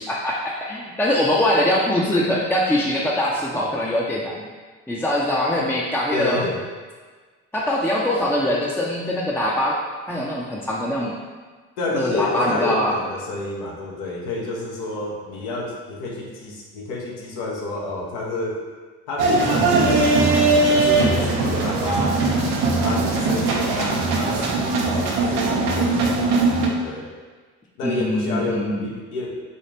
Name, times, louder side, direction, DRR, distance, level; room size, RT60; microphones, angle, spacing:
voice 1, 0.0-4.3 4.9-6.4 7.5-9.8 10.1-11.2 11.9-12.9 27.8-28.9, left 1 dB, 5° left, -4 dB, 0.5 m, -22 dB
voice 2, 6.1-6.6 11.8-18.6 19.1-20.3 20.7-22.2 22.8-27.1 27.8-29.4, left 2 dB, 80° left, -2 dB, 0.9 m, -29 dB
sound 1, 19.2-26.7, right 3 dB, 85° right, 0.7 m, -20 dB
4.2 x 2.4 x 3.3 m, 1.4 s
hypercardioid pair, 65°, 35 cm